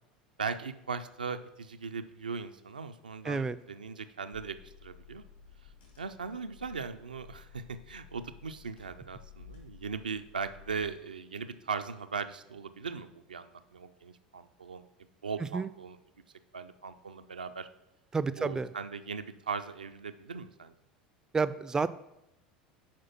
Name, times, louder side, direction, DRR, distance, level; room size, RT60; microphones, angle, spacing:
voice 1, 0.4-5.2 6.0-14.9 15.2-16.0 16.5-17.7 18.4-20.7, right 5 dB, 80° right, 9 dB, 0.4 m, -39 dB
voice 2, 3.3-3.6 15.5-15.7 18.1-18.7 21.3-21.9, right 4 dB, 15° right, 15 dB, 0.3 m, -29 dB
Car / Engine, 4.3-10.9, left 8 dB, 75° left, 2.4 m, -55 dB
5.9 x 4.8 x 5.8 m, 0.86 s
figure-of-eight pair, 75°, 4 cm